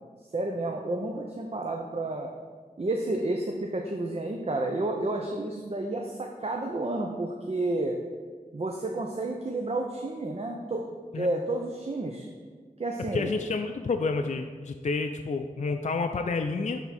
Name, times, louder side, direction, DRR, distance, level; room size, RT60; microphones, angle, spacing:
voice 1, 0.3-2.3 2.8-8.0 8.5-12.3 12.8-13.3, right 2 dB, 45° right, 2 dB, 0.6 m, -31 dB
voice 2, 13.1-16.8, left 4 dB, 50° left, 5 dB, 0.4 m, -29 dB
10.5 x 3.6 x 4.1 m, 1.5 s
wide cardioid pair, 70°, 15 cm